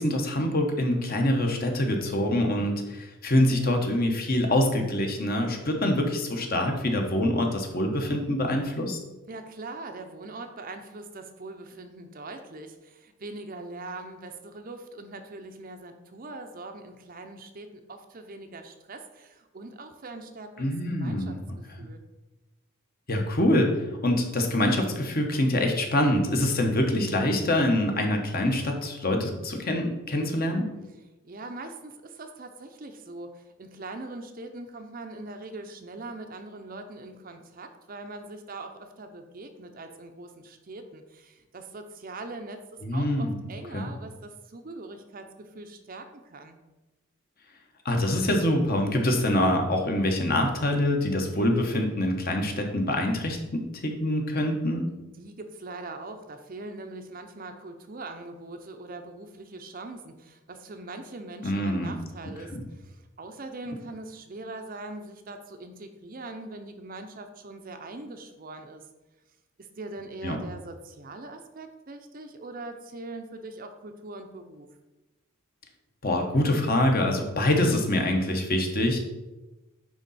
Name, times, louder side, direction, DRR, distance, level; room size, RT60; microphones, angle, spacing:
voice 1, 0.0-9.0 20.6-21.4 23.1-30.7 42.8-43.4 43.7-43.9 47.8-54.9 61.4-62.0 62.5-62.6 70.2-70.4 76.0-79.0, left 1 dB, 40° left, 3 dB, 1.0 m, -25 dB
voice 2, 9.3-22.0 31.2-42.6 42.9-46.6 55.2-68.8 69.6-74.7, right 2 dB, 40° right, 6 dB, 0.6 m, -42 dB
9.7 x 3.7 x 4.1 m, 1.1 s
head